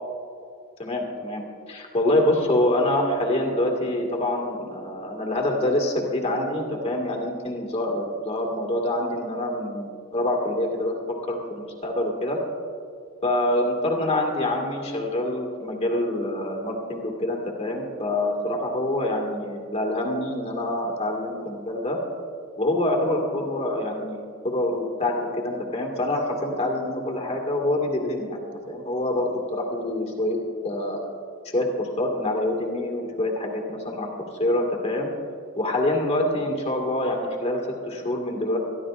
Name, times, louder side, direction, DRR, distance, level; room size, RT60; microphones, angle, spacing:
voice 1, 0.8-10.9 11.3-12.4 13.2-22.0 22.5-30.4 30.6-31.0 31.5-34.1 34.3-35.1 35.6-38.6, left 1 dB, 30° left, 0 dB, 1.9 m, -26 dB
25.0 x 12.0 x 2.5 m, 2.4 s
head